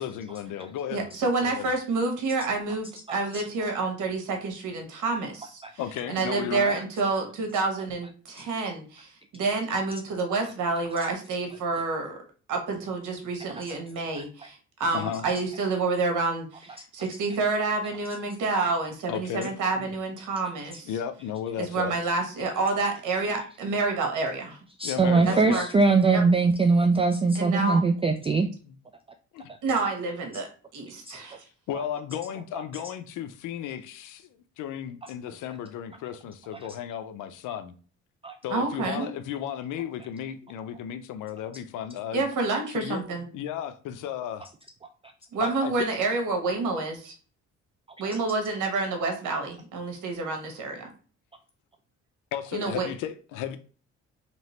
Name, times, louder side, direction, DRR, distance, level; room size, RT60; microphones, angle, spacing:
voice 1, 0.0-1.1 1.4-1.7 5.8-6.8 14.9-15.2 19.1-19.9 20.9-21.9 24.8-25.6 28.6-28.8 29.3-29.5 31.7-34.3 34.6-37.7 38.4-42.3 42.7-43.0 43.3-44.5 45.4-45.9 52.3-53.6, left 10 dB, 85° left, 0.5 m, -34 dB
voice 2, 0.9-5.6 6.1-12.2 12.5-20.9 21.6-24.6 25.2-25.7 26.1-26.2 27.3-27.8 29.6-30.5 30.7-31.4 38.5-39.1 42.1-43.3 45.3-47.1 48.0-50.9 52.5-52.9, right 3 dB, 80° right, 1.3 m, -28 dB
voice 3, 24.8-28.5 31.1-31.2 38.2-38.3, right 4 dB, 20° right, 0.3 m, -21 dB
3.1 x 2.9 x 4.2 m
cardioid pair, 90°, 30 cm